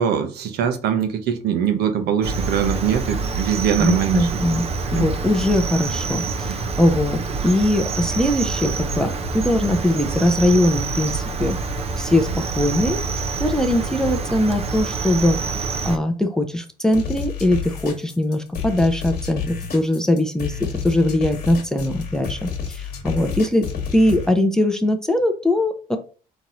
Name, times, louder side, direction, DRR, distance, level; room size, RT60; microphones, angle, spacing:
voice 1, 0.0-4.4 4.9-5.1 6.5-6.6, right 8 dB, 70° right, 0.9 m, -22 dB
Cricket, 2.2-16.0, right 4 dB, 35° right, 0.7 m, -26 dB
voice 2, 3.8-4.6 4.9-11.6 12.0-13.0 13.4-15.4 15.9-26.0, left 1 dB, 5° left, 0.6 m, -21 dB
sound 1, 16.9-24.3, left 6 dB, 65° left, 1.3 m, -30 dB
4.3 x 3.1 x 3.9 m
cardioid pair, 110°, 17 cm